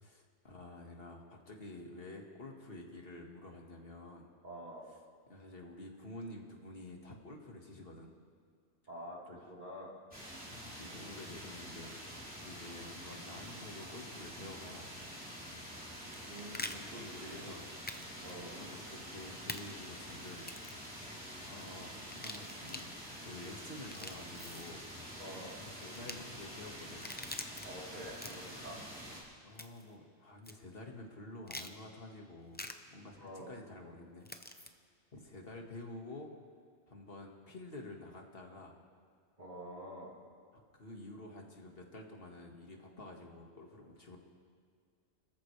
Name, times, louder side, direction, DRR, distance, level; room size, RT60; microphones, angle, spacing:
voice 1, 0.0-4.3 5.3-8.1 10.5-11.9 12.4-14.9 16.6-17.6 18.6-20.5 21.5-22.9 23.2-24.8 25.7-27.1 29.4-34.7 35.1-36.3 36.9-38.7 40.5-44.2, left 2 dB, 55° left, 1 dB, 2.1 m, -49 dB
voice 2, 4.4-4.8 8.9-9.9 16.3-16.5 16.9-17.5 18.2-18.6 25.2-25.5 27.6-28.8 33.2-33.5 39.4-40.1, equal, 45° right, -5 dB, 4.1 m, -47 dB
sound 1, 10.1-29.2, equal, 5° right, 3.7 m, -47 dB
sound 2, 16.1-16.8 17.9-18.0 18.3-18.4 19.5-19.6 20.4-20.8 22.0-22.8 23.7-24.7 25.9-26.1 26.8-27.7 28.1-28.6 29.6-29.9 30.4-30.5 31.5-31.7 32.5-32.7 34.2-34.7, left 1 dB, 10° left, 0.6 m, -44 dB
30.0 x 14.0 x 3.3 m, 2.2 s
omnidirectional pair, 1.2 m